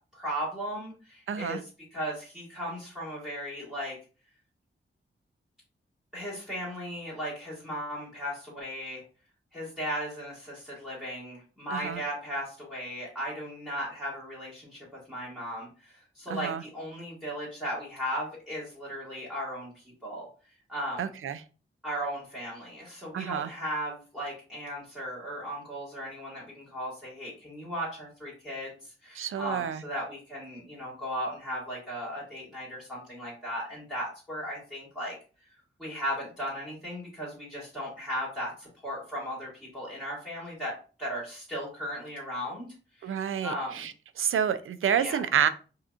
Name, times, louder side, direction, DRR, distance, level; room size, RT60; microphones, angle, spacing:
voice 1, 0.1-4.0 6.1-9.0 9.5-19.7 20.0-20.3 20.7-21.0 21.8-28.7 29.0-35.2 35.8-40.7 41.0-42.7 43.0-43.9 45.0-45.2, equal, 5° right, -8 dB, 2.0 m, -36 dB
voice 2, 1.3-1.6 11.7-12.0 16.3-16.6 21.0-21.4 23.1-23.5 29.2-29.8 43.0-43.9 44.2-45.5, right 8 dB, 80° right, 13 dB, 0.4 m, -29 dB
4.9 x 2.9 x 2.4 m, 0.36 s
wide cardioid pair, 105°, 21 cm